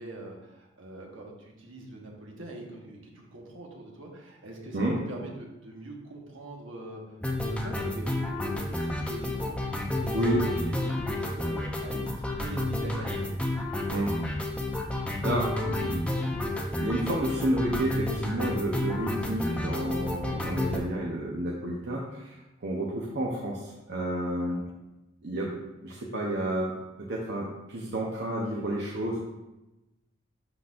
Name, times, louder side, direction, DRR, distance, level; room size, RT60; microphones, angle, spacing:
voice 1, 0.0-13.6 24.5-24.7, right 1 dB, 75° right, -1 dB, 1.4 m, -43 dB
sound 1, 7.2-20.8, left 1 dB, 5° left, 0.6 m, -30 dB
voice 2, 10.1-10.4 13.9-14.1 14.9-16.0 16.7-22.3 22.6-24.6 25.2-25.6 25.8-26.7 27.1-29.2, right 1 dB, 55° right, -3 dB, 0.9 m, -30 dB
11.5 x 4.1 x 2.5 m, 0.98 s
head